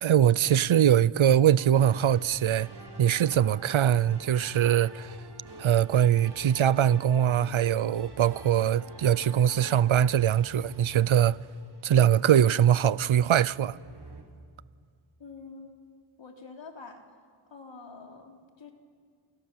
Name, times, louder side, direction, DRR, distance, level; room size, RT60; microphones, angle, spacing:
voice 1, 0.0-2.7 3.0-5.1 5.6-11.4 11.8-13.8, right 10 dB, 75° right, 0.7 m, -22 dB
sound 1, 1.6-14.2, right 1 dB, 55° right, 3.8 m, -47 dB
voice 2, 15.2-15.7 16.2-17.0 17.5-18.7, left 4 dB, 65° left, 3.4 m, -46 dB
28.5 x 28.0 x 7.4 m
wide cardioid pair, 80°, 48 cm